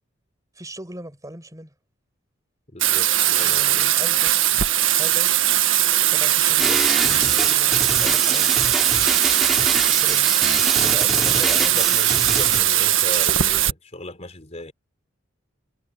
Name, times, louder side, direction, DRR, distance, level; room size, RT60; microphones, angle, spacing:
voice 1, 0.6-1.7 3.4-4.5 4.9-5.3 6.0-8.5 9.7-10.3 10.8-12.0, right 1 dB, 15° right, 5.9 m, -39 dB
voice 2, 2.7-3.9 7.9-8.2 9.9-10.5 11.1-14.7, left 1 dB, 35° left, 4.1 m, -37 dB
Bathtub (filling or washing), 2.8-13.7, right 12 dB, 80° right, 1.6 m, -19 dB
sound 1, 6.6-12.6, equal, ahead, 3.4 m, -27 dB
head